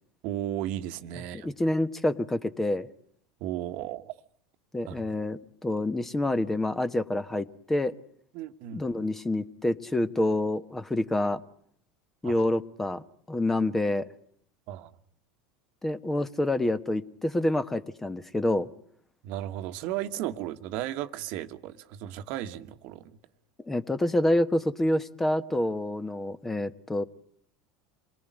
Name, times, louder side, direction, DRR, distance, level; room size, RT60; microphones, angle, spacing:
voice 1, 0.2-1.5 3.4-4.1 4.9-5.0 8.3-8.8 12.2-12.4 14.7-14.9 19.2-23.2, right 12 dB, 60° right, 1.3 m, -35 dB
voice 2, 1.3-2.9 4.7-7.9 8.7-11.4 12.2-14.1 15.8-18.7 23.6-27.1, left 1 dB, 10° left, 1.1 m, -27 dB
27.0 x 19.0 x 9.3 m
hypercardioid pair, 100°, 3 cm